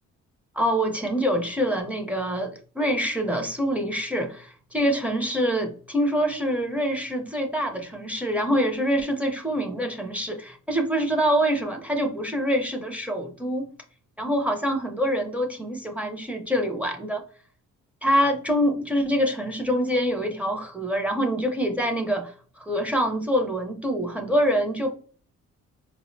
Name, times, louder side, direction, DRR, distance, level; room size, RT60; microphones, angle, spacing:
voice 1, 0.5-13.7 14.2-17.2 18.0-24.9, equal, 5° right, 0.6 m, -25 dB
4.5 x 2.1 x 2.5 m
cardioid pair, 90°, 30 cm